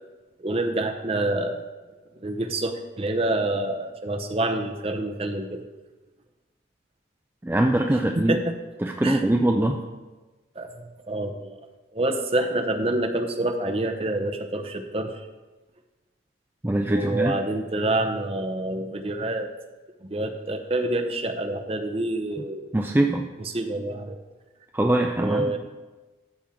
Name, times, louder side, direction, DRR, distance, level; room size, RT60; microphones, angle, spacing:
voice 1, 0.4-1.6 2.1-5.6 8.2-8.6 9.0-9.2 10.6-11.6 11.9-15.3 16.9-19.5 20.0-22.7 23.4-24.2 25.1-25.6, right 2 dB, 30° right, 4 dB, 0.7 m, -27 dB
voice 2, 7.4-8.3 8.8-9.8 16.6-17.3 22.7-23.2 24.7-25.5, right 1 dB, 10° right, 2 dB, 0.4 m, -22 dB
13.0 x 7.1 x 3.7 m, 1.2 s
head